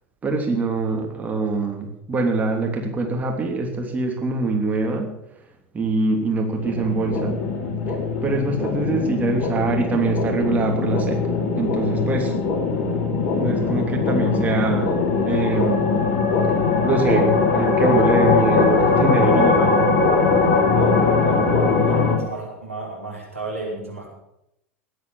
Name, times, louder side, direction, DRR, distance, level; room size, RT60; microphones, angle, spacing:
voice 1, 0.2-5.1 5.7-7.3 7.9-8.0 8.2-11.2 11.6-12.3 13.4-14.9 15.2-15.9 16.8-19.8, right 3 dB, 20° right, 1 dB, 3.2 m, -23 dB
sound 1, 6.6-22.2, left 4 dB, 40° left, 4.2 m, -20 dB
voice 2, 20.8-21.5 21.8-24.1, right 2 dB, 85° right, -3 dB, 5.2 m, -33 dB
20.0 x 8.6 x 7.2 m, 0.82 s
figure-of-eight pair, 80°, 7 cm